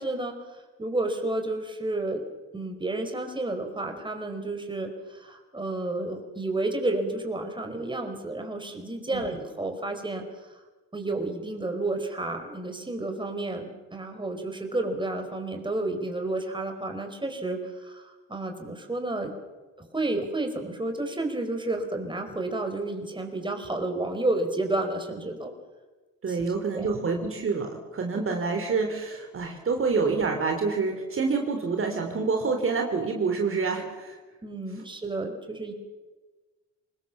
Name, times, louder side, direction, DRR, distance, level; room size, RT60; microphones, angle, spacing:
voice 1, 0.0-2.3 2.5-10.5 10.9-19.3 19.8-25.5 26.3-26.9 34.4-35.7, right 2 dB, 15° right, 5 dB, 4.8 m, -31 dB
voice 2, 26.2-34.2, right 4 dB, 45° right, 3 dB, 3.3 m, -27 dB
24.5 x 20.0 x 7.3 m, 1.2 s
cardioid pair, 90°, 30 cm